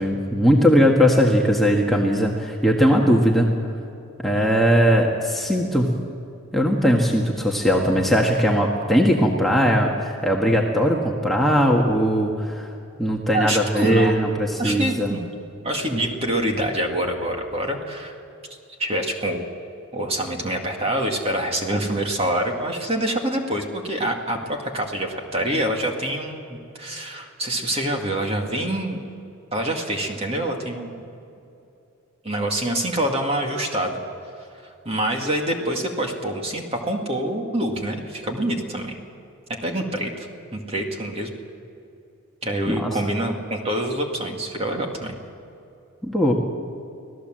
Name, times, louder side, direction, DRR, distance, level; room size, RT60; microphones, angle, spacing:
voice 1, 0.0-3.5 4.2-5.9 6.5-12.7 13.0-15.1 42.7-43.0 46.0-46.3, equal, ahead, -2 dB, 1.6 m, -19 dB
voice 2, 13.3-14.3 14.6-15.2 15.6-18.2 18.8-19.4 19.9-29.0 29.5-31.0 32.2-34.0 34.6-39.0 39.6-41.3 42.4-45.1, right 1 dB, 25° right, 2 dB, 2.2 m, -26 dB
25.5 x 17.0 x 7.7 m, 2.7 s
head